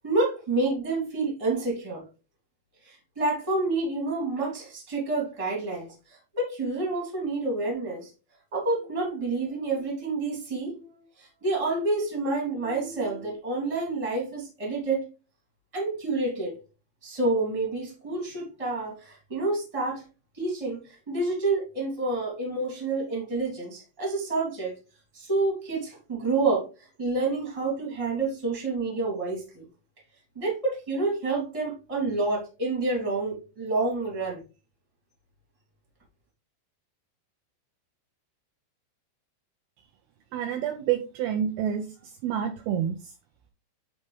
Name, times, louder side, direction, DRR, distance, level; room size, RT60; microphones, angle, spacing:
voice 1, 0.0-2.0 2.8-8.1 8.5-10.9 11.2-15.0 15.7-16.5 17.0-20.0 20.3-24.7 25.1-26.7 27.0-29.7 30.3-34.4, right 3 dB, 10° right, -2 dB, 1.8 m, -28 dB
voice 2, 40.3-43.1, right 9 dB, 80° right, 6 dB, 2.3 m, -29 dB
8.5 x 4.2 x 3.2 m, 0.33 s
omnidirectional pair, 4.9 m